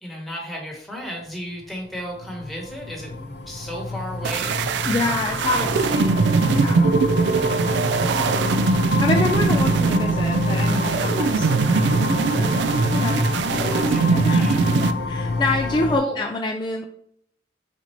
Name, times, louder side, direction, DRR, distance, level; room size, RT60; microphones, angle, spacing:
voice 1, 0.0-5.7 7.4-8.1 13.5-14.6 15.9-16.2, equal, ahead, -2 dB, 1.1 m, -34 dB
sound 1, 1.6-16.0, left 3 dB, 60° left, 0.6 m, -28 dB
sound 2, 4.2-14.9, right 4 dB, 80° right, 0.3 m, -21 dB
voice 2, 4.8-7.0 9.0-12.6 12.9-16.8, left 2 dB, 25° left, 3 dB, 0.3 m, -27 dB
4.3 x 3.8 x 2.9 m, 0.69 s
head